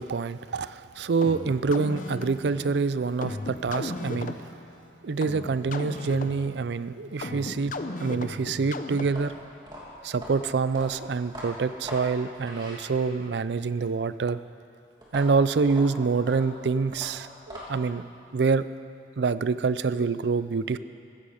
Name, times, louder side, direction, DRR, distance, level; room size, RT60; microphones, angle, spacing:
voice 1, 0.0-4.4 5.0-9.3 10.0-14.4 15.1-18.0 18.3-18.7 19.2-20.8, right 4 dB, 75° right, 14 dB, 0.4 m, -26 dB
sound 1, 1.2-9.4, left 2 dB, 45° left, 0.7 m, -36 dB
sound 2, 9.0-13.3 15.0-18.0, equal, 25° right, 2.6 m, -41 dB
15.0 x 14.5 x 5.0 m, 2.4 s
head